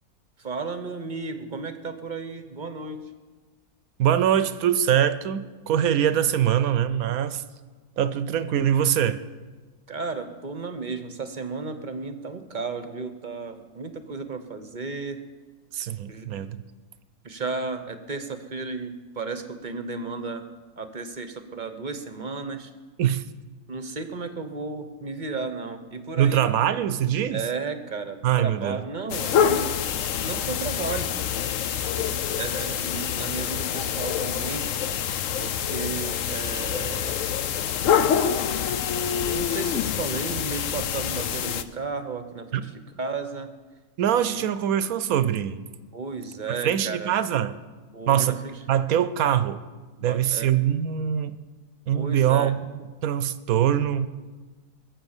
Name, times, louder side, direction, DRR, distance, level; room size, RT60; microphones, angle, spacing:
voice 1, 0.4-3.0 9.9-15.2 16.1-16.3 17.2-20.4 20.8-22.7 23.7-26.4 27.3-31.1 32.0-34.7 35.4-37.2 39.2-43.5 44.1-44.4 45.9-47.1 47.9-48.3 50.0-50.5 51.9-52.5, right 4 dB, 40° right, 9 dB, 0.8 m, -34 dB
voice 2, 4.0-7.4 8.0-9.2 15.7-16.6 23.0-23.2 26.2-27.5 28.2-28.8 42.5-42.6 44.0-45.7 46.6-47.6 48.1-48.4 48.7-49.6 50.0-51.4 51.9-54.1, right 10 dB, 70° right, 13 dB, 1.0 m, -23 dB
sound 1, 29.1-41.6, left 8 dB, 60° left, 1.0 m, -26 dB
21.5 x 7.3 x 7.2 m, 1.4 s
omnidirectional pair, 1.7 m